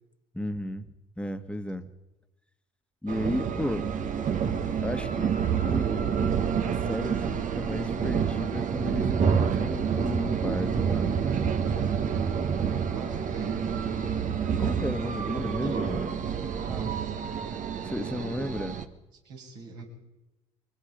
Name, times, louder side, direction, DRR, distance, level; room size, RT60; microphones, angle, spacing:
voice 1, 0.3-1.9 3.0-3.9 4.8-5.3 5.6-6.3 6.6-11.2 14.6-16.2 17.8-18.8, left 1 dB, 5° left, 8 dB, 1.8 m, -34 dB
sound 1, 3.1-18.8, right 7 dB, 50° right, 1.6 m, -28 dB
voice 2, 12.8-14.0 15.3-16.0 16.6-17.1 18.0-18.2 19.2-19.8, right 3 dB, 75° right, -1 dB, 6.6 m, -43 dB
23.5 x 21.0 x 5.3 m, 1.0 s
hypercardioid pair, 60°, 17 cm